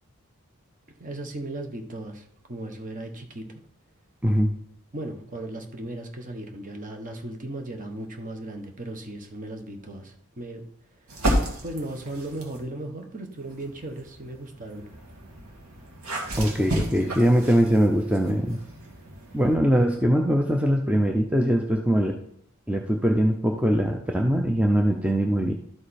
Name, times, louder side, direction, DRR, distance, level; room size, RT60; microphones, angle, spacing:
voice 1, 1.0-3.6 4.9-10.6 11.6-14.9, right 1 dB, 35° right, 4 dB, 1.1 m, -36 dB
voice 2, 4.2-4.5 16.4-18.6 19.3-22.2 22.7-25.5, equal, 5° right, 2 dB, 0.5 m, -22 dB
sound 1, 11.1-12.7 13.3-19.5, right 1 dB, 80° right, 2.2 m, -32 dB
12.5 x 5.0 x 4.3 m, 0.69 s
head